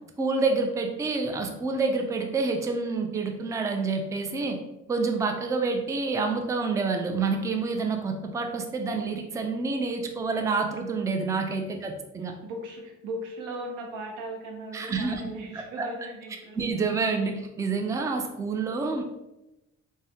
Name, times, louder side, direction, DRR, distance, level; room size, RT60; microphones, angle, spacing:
voice 1, 0.2-4.6 4.9-12.3 14.7-15.2 15.5-15.9 16.5-19.0, right 4 dB, 10° right, 4 dB, 0.3 m, -28 dB
voice 2, 12.4-16.5 17.2-17.3, right 1 dB, 90° right, 1 dB, 0.7 m, -38 dB
3.3 x 2.1 x 2.7 m, 0.95 s
cardioid pair, 90°, 30 cm